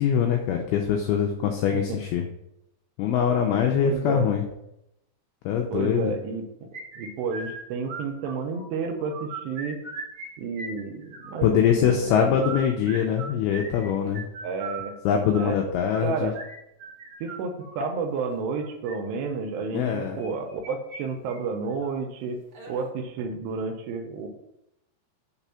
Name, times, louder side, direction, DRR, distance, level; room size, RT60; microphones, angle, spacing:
voice 1, 0.0-2.3 3.0-4.5 5.5-6.1 11.4-14.3 15.1-16.3 19.7-20.2, left 8 dB, 85° left, 3 dB, 2.2 m, -23 dB
voice 2, 3.8-4.3 5.7-6.7 7.0-9.8 10.4-12.6 14.4-14.9 15.3-15.6 16.0-16.3 17.2-22.4 22.7-24.3, right 4 dB, 80° right, 5 dB, 2.7 m, -31 dB
sound 1, 6.7-8.6 9.0-10.3 10.5-11.6 12.2-17.9 18.6-18.9 20.2-21.0 21.3-21.4 21.8-21.9 22.5-22.9, right 4 dB, 55° right, 1.5 m, -39 dB
6.0 x 4.1 x 5.5 m, 0.84 s
omnidirectional pair, 5.1 m